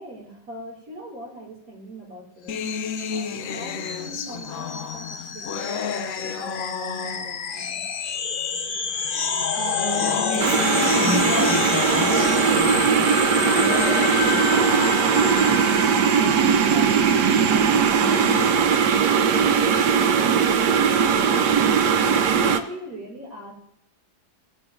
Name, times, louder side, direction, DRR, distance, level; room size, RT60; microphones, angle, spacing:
voice 1, 0.0-2.6 3.1-7.8 20.9-23.5, equal, 55° right, -2 dB, 2.9 m, -41 dB
sound 1, 2.5-7.6 8.5-8.6 9.7-15.6 17.7-18.5, left 6 dB, 65° left, 0.9 m, -32 dB
sound 2, 2.6-18.8, left 6 dB, 85° left, 0.4 m, -29 dB
voice 2, 9.5-12.4, left 3 dB, 15° left, 1 dB, 0.9 m, -32 dB
sound 3, 10.4-22.6, right 7 dB, 80° right, 1.3 m, -19 dB
16.0 x 8.5 x 2.5 m, 0.79 s
omnidirectional pair, 1.8 m